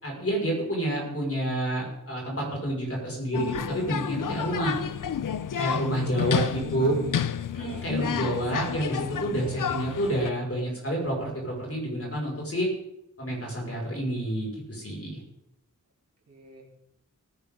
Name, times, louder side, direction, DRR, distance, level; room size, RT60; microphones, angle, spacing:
voice 1, 0.0-4.8 5.6-6.9 7.5-12.7 13.2-15.2, right 1 dB, 45° left, -2 dB, 5.2 m, -29 dB
sound 1, 3.3-10.3, left 8 dB, 80° left, 0.6 m, -31 dB
voice 2, 6.1-7.9 16.3-16.6, right 2 dB, 50° right, -1 dB, 3.5 m, -48 dB
18.5 x 10.5 x 3.7 m, 0.81 s
wide cardioid pair, 75°, 32 cm